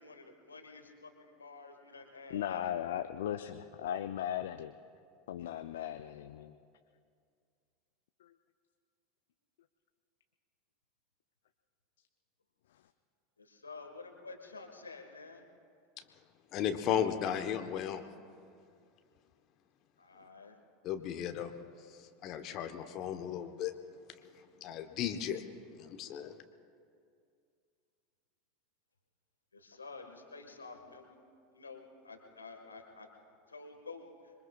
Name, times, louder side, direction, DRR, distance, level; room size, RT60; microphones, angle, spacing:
voice 1, 0.0-2.6 13.4-15.4 20.0-20.6 29.5-31.2 31.5-33.1 33.5-34.1, left 4 dB, 90° left, 4 dB, 1.6 m, -50 dB
voice 2, 2.3-4.7 5.3-6.6 8.2-8.3, left 10 dB, 70° left, 9 dB, 0.5 m, -37 dB
voice 3, 16.5-18.0 20.8-21.5 22.2-23.7 24.6-25.4 25.8-26.3, left 9 dB, 45° left, 7 dB, 1.1 m, -35 dB
26.0 x 22.5 x 2.4 m, 2.3 s
figure-of-eight pair, 80°, 0 cm